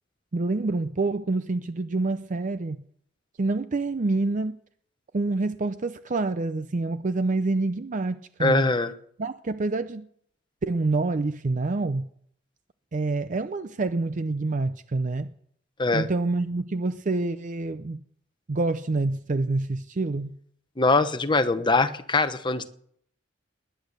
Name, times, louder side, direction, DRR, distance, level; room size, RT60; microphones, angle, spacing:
voice 1, 0.3-2.8 3.4-4.6 5.1-8.7 9.2-10.1 10.6-12.0 12.9-15.3 15.9-18.0 18.5-20.3, right 3 dB, 40° right, 0.5 m, -27 dB
voice 2, 8.4-8.9 15.8-16.1 20.8-22.7, left 3 dB, 25° left, 0.9 m, -22 dB
19.5 x 10.5 x 6.6 m
head